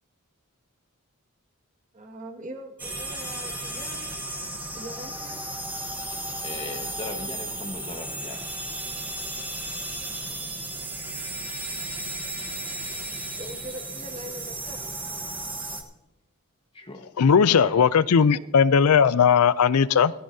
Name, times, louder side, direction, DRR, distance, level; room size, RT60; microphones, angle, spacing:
voice 1, 1.9-4.1 4.7-5.4 13.3-15.0 18.3-18.5, right 1 dB, 35° right, 2 dB, 1.9 m, -41 dB
sound 1, 2.8-15.8, right 2 dB, 10° right, 1.2 m, -34 dB
voice 2, 6.4-8.5 16.7-17.1 17.5-17.8, left 2 dB, 25° left, 4 dB, 1.3 m, -38 dB
voice 3, 17.2-20.1, left 6 dB, 90° left, 17 dB, 0.5 m, -18 dB
18.5 x 13.5 x 2.8 m, 0.97 s
head